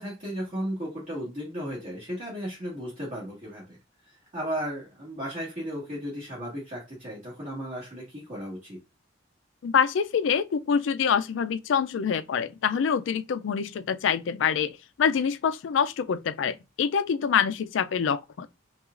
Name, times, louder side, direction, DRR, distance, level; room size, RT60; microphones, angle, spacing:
voice 1, 0.0-3.8 4.0-8.8, equal, 40° right, 1.7 m, -35 dB
voice 2, 9.6-18.5, left 7 dB, 75° left, 0.3 m, -26 dB
5.8 x 2.4 x 2.4 m
head